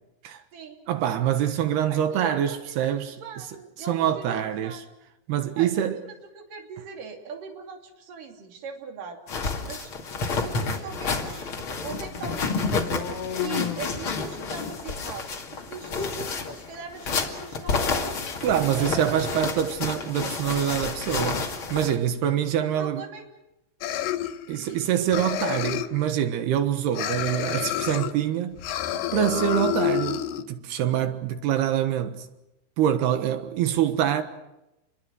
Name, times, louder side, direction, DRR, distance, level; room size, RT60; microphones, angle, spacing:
voice 1, 0.9-3.2 3.9-4.8 5.3-6.0 18.4-23.0 24.5-28.6 29.1-32.3 32.8-34.2, right 10 dB, 80° right, 3.4 m, -25 dB
voice 2, 1.9-4.8 5.6-9.2 9.6-9.9 10.4-11.4 11.8-12.7 13.4-18.1 18.7-19.7 20.2-20.3 22.6-23.2 24.6-24.9, right 5 dB, 55° right, 4.4 m, -40 dB
sound 1, 9.3-22.0, left 4 dB, 35° left, 2.7 m, -30 dB
sound 2, 11.8-19.8, left 8 dB, 70° left, 3.1 m, -40 dB
sound 3, 23.8-24.8 25.1-26.1 27.0-28.1 28.6-30.4, left 11 dB, 90° left, 3.3 m, -28 dB
29.5 x 22.5 x 6.4 m
omnidirectional pair, 4.6 m